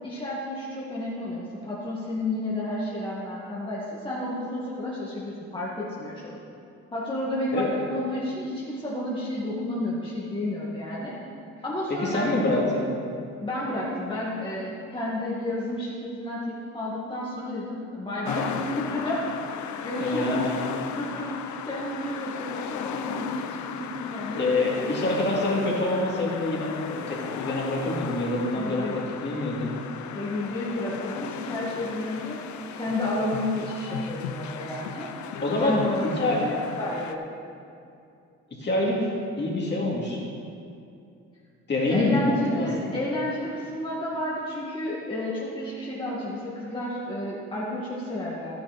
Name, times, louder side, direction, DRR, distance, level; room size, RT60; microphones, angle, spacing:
voice 1, 0.0-6.3 6.9-11.1 11.6-12.3 13.4-19.2 19.7-20.6 21.0-24.7 28.5-29.0 30.1-32.4 32.7-35.1 35.6-37.2 41.9-48.5, left 1 dB, 15° left, -7 dB, 2.0 m, -31 dB
voice 2, 11.9-12.9 20.0-20.6 24.3-29.7 35.4-35.8 36.2-36.4 38.6-40.2 41.7-42.9, left 2 dB, 35° left, -4 dB, 2.8 m, -26 dB
sound 1, 18.2-37.2, left 8 dB, 70° left, 0.7 m, -36 dB
11.5 x 9.9 x 4.2 m, 2.6 s
cardioid pair, 90°, 30 cm